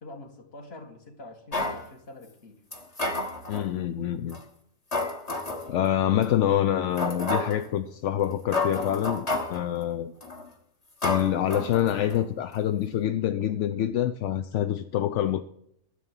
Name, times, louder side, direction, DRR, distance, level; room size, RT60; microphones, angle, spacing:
voice 1, 0.0-2.6, left 2 dB, 45° left, 1.9 m, -45 dB
sound 1, 1.5-1.8 2.7-3.7 4.3-4.4 4.9-5.7 6.2-6.3 7.0-7.6 8.2-8.3 8.5-9.6 10.2-10.5 11.0-12.2 12.5-12.6, left 2 dB, 25° left, 1.4 m, -30 dB
voice 2, 3.5-4.4 5.7-10.1 11.0-15.4, left 11 dB, 65° left, 0.8 m, -26 dB
11.5 x 7.0 x 7.4 m
omnidirectional pair, 1.5 m